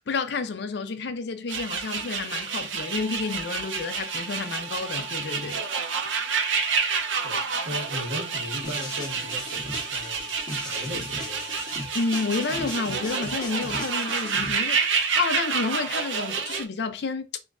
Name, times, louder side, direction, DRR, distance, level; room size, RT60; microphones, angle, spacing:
voice 1, 0.0-5.6 11.9-17.4, left 4 dB, 60° left, 0.4 m, -30 dB
sound 1, 1.5-16.6, right 5 dB, 75° right, 0.5 m, -29 dB
sound 2, 2.8-14.0, left 3 dB, 20° right, 0.6 m, -45 dB
voice 2, 7.2-10.3 10.6-11.6, left 1 dB, 50° right, 1.4 m, -37 dB
sound 3, 8.6-14.5, left 1 dB, 20° left, 1.0 m, -38 dB
3.0 x 2.5 x 3.5 m
head